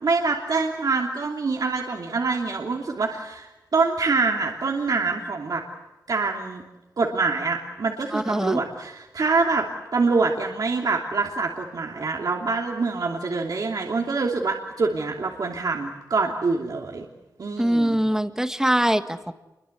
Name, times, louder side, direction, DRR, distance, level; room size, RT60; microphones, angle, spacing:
voice 1, 0.0-5.6 6.1-6.6 7.0-9.7 9.9-17.0 17.4-18.0, right 4 dB, 65° right, 1 dB, 3.1 m, -25 dB
voice 2, 8.1-8.6 17.6-19.3, right 1 dB, 10° right, 8 dB, 1.7 m, -23 dB
28.5 x 23.5 x 8.2 m, 1.0 s
wide cardioid pair, 110°, 7 cm